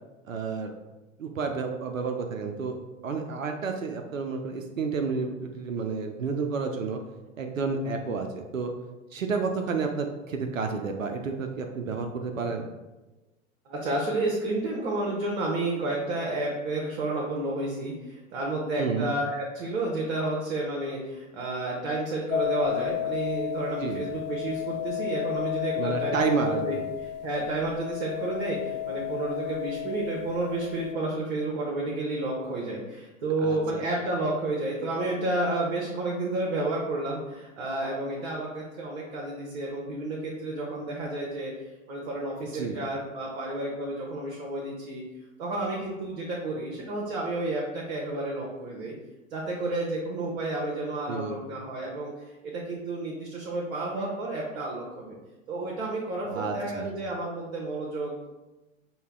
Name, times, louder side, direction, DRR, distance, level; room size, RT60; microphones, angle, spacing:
voice 1, 0.3-0.7 1.2-2.8 3.0-7.0 7.4-8.7 9.1-12.6 18.8-19.1 23.8-24.0 25.8-26.8 33.4-33.8 42.5-42.8 51.1-51.4 56.3-56.9, right 4 dB, 80° right, 4 dB, 0.6 m, -30 dB
voice 2, 13.7-26.2 26.5-26.8 27.2-41.5 41.9-45.0 45.4-48.9 49.3-52.1 52.4-55.2 55.5-58.3, right 2 dB, 55° right, -3 dB, 1.0 m, -31 dB
sound 1, 22.3-30.9, left 13 dB, 45° left, 0.5 m, -33 dB
5.4 x 2.2 x 3.4 m, 1.1 s
figure-of-eight pair, 90°, 39 cm